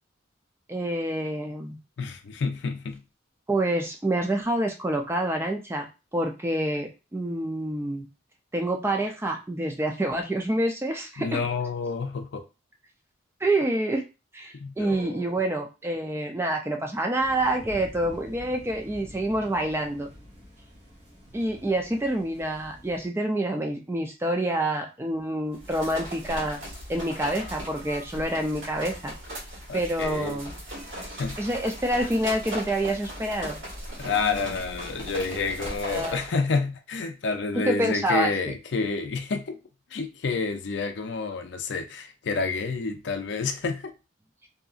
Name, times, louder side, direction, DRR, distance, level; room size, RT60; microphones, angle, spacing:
voice 1, 0.7-1.8 3.5-5.9 6.1-8.1 8.5-11.4 13.4-14.0 14.3-20.1 21.3-26.6 26.9-29.1 29.7-30.6 31.4-33.6 35.9-36.2 37.5-38.3, right 1 dB, 15° right, 0.3 m, -27 dB
voice 2, 2.0-3.0 11.2-12.4 14.5-15.2 29.7-30.4 31.2-31.4 34.0-39.6 39.9-43.9, left 4 dB, 60° left, 0.4 m, -29 dB
sound 1, 17.2-23.1, equal, 55° right, 1.1 m, -47 dB
sound 2, 25.5-36.3, equal, 75° right, 1.4 m, -38 dB
2.7 x 2.5 x 2.4 m
head